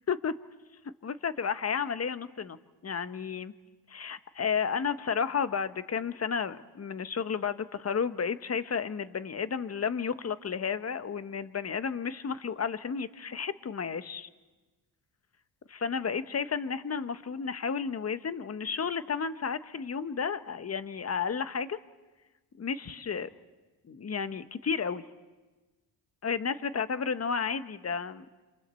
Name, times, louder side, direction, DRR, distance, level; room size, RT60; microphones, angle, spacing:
voice 1, 1.0-2.6 2.8-3.5 3.9-14.3 15.7-21.8 22.6-23.3 23.9-25.0 26.2-28.4, left 6 dB, 35° left, 13 dB, 1.0 m, -32 dB
28.0 x 27.0 x 4.3 m, 1.2 s
cardioid pair, 90°, 44 cm